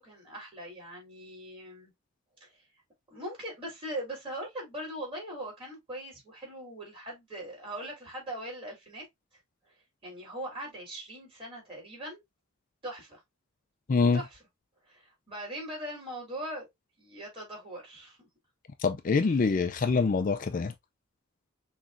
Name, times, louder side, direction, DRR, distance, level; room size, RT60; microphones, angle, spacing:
voice 1, 0.0-1.9 2.4-2.6 3.1-9.0 10.0-12.2 12.8-13.2 14.1-14.4 14.8-16.7 17.0-18.2, right 1 dB, 25° right, 3.3 m, -40 dB
voice 2, 13.9-14.2 18.8-20.7, left 4 dB, 40° left, 0.4 m, -25 dB
6.1 x 3.1 x 2.5 m
head